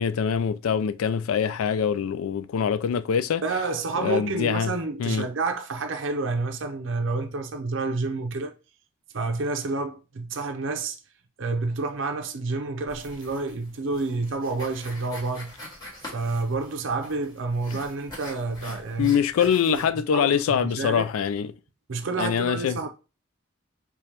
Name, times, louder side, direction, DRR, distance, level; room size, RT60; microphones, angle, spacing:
voice 1, 0.0-3.4 4.0-4.7 5.0-5.3 19.0-21.5 22.2-22.9, left 7 dB, 90° left, 0.3 m, -24 dB
voice 2, 3.4-8.5 9.1-11.0 11.4-15.6 16.1-19.8 20.1-21.1 21.9-22.9, right 3 dB, 65° right, 0.5 m, -29 dB
sound 1, 12.9-19.9, left 1 dB, 20° left, 1.3 m, -45 dB
5.0 x 2.3 x 2.8 m
head